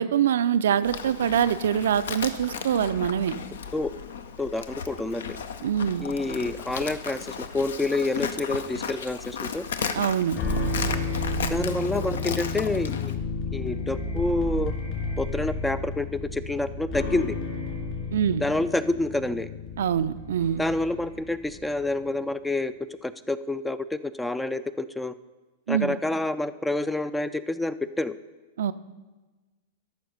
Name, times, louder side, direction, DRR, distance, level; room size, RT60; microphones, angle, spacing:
voice 1, 0.0-3.3 5.6-6.1 9.9-10.4 18.1-18.5 19.8-20.6 25.7-26.0 28.6-28.7, right 9 dB, 60° right, 13 dB, 0.4 m, -24 dB
Livestock farm animals working animals, 0.8-13.1, left 6 dB, 60° left, 0.6 m, -35 dB
voice 2, 4.4-5.4 6.0-9.6 11.5-13.2 13.5-14.7 15.2-17.4 18.4-19.5 20.6-22.7 23.0-25.1 25.7-28.1, left 2 dB, 5° left, 15 dB, 0.4 m, -28 dB
sound 1, 10.3-21.7, left 2 dB, 35° left, 2.9 m, -32 dB
13.0 x 5.8 x 5.4 m, 1.2 s
figure-of-eight pair, 95°, 0 cm